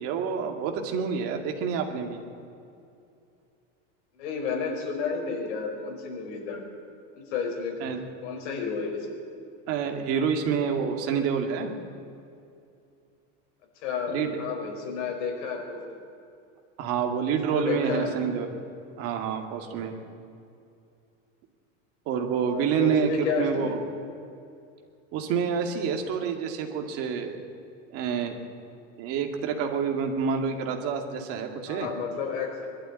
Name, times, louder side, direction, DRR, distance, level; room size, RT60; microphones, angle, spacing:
voice 1, 0.0-2.2 7.8-8.0 9.7-11.7 14.1-14.3 16.8-18.5 19.0-19.9 22.1-23.8 25.1-27.4 27.9-28.4 29.0-31.9, right 6 dB, 40° right, 3 dB, 2.3 m, -28 dB
voice 2, 4.2-6.6 7.1-7.8 8.2-9.1 13.8-15.8 17.5-18.2 22.5-23.8 31.7-32.7, left 5 dB, 70° left, 1 dB, 5.0 m, -31 dB
21.5 x 12.5 x 9.7 m, 2.6 s
supercardioid pair, 170°, 37 cm